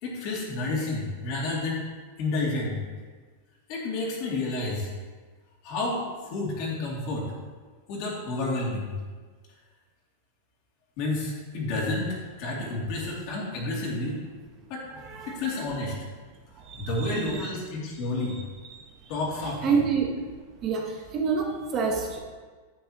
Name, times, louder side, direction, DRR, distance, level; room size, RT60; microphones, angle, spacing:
voice 1, 0.0-1.9 2.2-2.8 3.7-4.9 5.6-6.0 6.3-7.3 7.9-8.9 11.0-14.2 14.7-14.8 15.3-15.9 16.7-18.4 19.1-19.8, left 2 dB, 40° left, -3 dB, 2.5 m, -30 dB
voice 2, 15.0-15.4 16.6-17.5 19.6-20.1 20.6-22.2, right 5 dB, 30° right, 1 dB, 0.9 m, -28 dB
10.5 x 8.5 x 3.0 m, 1.4 s
supercardioid pair, 160°, 0 cm